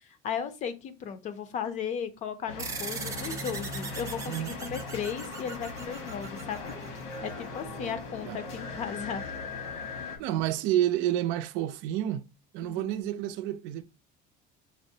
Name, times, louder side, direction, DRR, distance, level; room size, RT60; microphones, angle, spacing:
voice 1, 0.2-6.7 7.2-9.2 9.8-9.9 12.6-12.9, left 7 dB, 40° left, 0.5 m, -36 dB
sound 1, 2.5-10.2, left 3 dB, 85° left, 1.3 m, -39 dB
sound 2, 2.6-7.5, right 5 dB, 15° right, 0.5 m, -40 dB
voice 2, 4.3-4.6 7.8-8.0 8.2-8.4 10.2-12.3 12.5-13.8, right 12 dB, 80° right, 0.5 m, -29 dB
6.1 x 2.0 x 2.7 m
cardioid pair, 165°, 19 cm